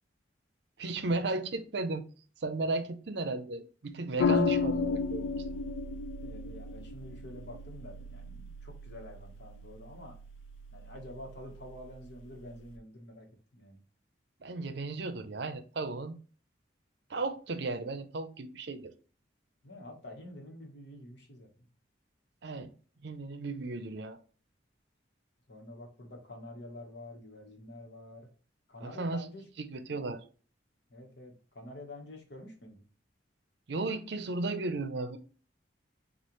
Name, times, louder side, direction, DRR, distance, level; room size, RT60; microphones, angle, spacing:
voice 1, 0.8-2.0 2.4-5.3 14.4-16.2 17.1-18.9 22.4-22.7 23.0-24.2 28.8-29.2 29.7-30.2 33.7-35.2, right 3 dB, 60° right, 0.5 m, -35 dB
voice 2, 4.0-4.6 6.2-10.2 10.7-13.3 13.5-13.8 19.6-21.7 25.5-28.3 28.7-29.4 30.9-32.8, left 1 dB, 65° left, 1.2 m, -48 dB
sound 1, 4.2-12.7, left 5 dB, 80° left, 0.4 m, -35 dB
6.4 x 2.4 x 3.1 m
head